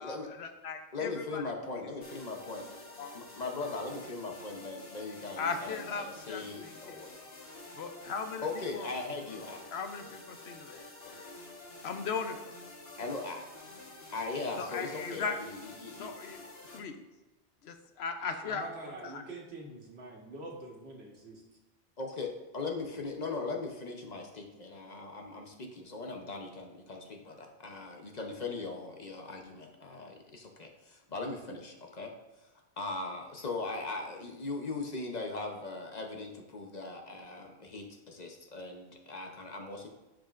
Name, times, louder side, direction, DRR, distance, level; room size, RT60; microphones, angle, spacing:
voice 1, 0.0-1.4 3.0-3.1 5.4-7.0 7.7-8.4 8.7-8.9 9.7-11.2 11.8-12.6 14.6-15.4 16.0-16.4 16.7-17.0 17.6-18.6 19.0-19.2, left 5 dB, 80° left, 7 dB, 0.9 m, -38 dB
voice 2, 0.9-2.6 3.1-7.1 8.4-9.6 13.0-13.4 14.1-16.1 22.0-32.1 32.4-39.9, left 3 dB, 45° left, 2 dB, 0.9 m, -39 dB
sound 1, 2.0-16.8, left 2 dB, 60° left, 1.7 m, -49 dB
voice 3, 18.4-21.4, right 2 dB, 75° right, -1 dB, 1.6 m, -45 dB
10.5 x 4.9 x 2.5 m, 1.1 s
omnidirectional pair, 1.1 m